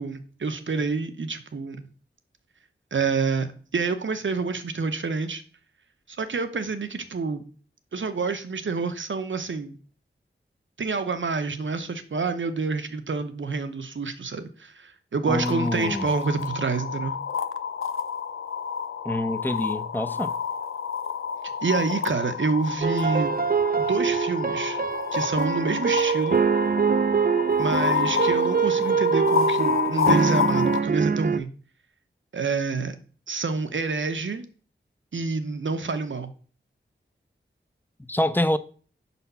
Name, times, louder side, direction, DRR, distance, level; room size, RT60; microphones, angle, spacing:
voice 1, 0.0-1.9 2.9-3.5 3.7-5.4 6.1-7.4 7.9-9.8 10.8-17.2 21.6-23.3 23.8-24.8 25.1-26.4 27.6-31.5 32.3-33.0 33.3-34.5 35.1-36.3, right 4 dB, 70° right, 0.8 m, -27 dB
sound 1, 15.3-30.8, left 6 dB, 85° left, 0.5 m, -29 dB
voice 2, 15.3-16.1 19.0-20.3 38.1-38.6, left 1 dB, 10° left, 0.5 m, -26 dB
sound 2, 22.8-31.4, right 6 dB, 45° right, 0.4 m, -24 dB
5.6 x 4.2 x 5.5 m
wide cardioid pair, 50°, 21 cm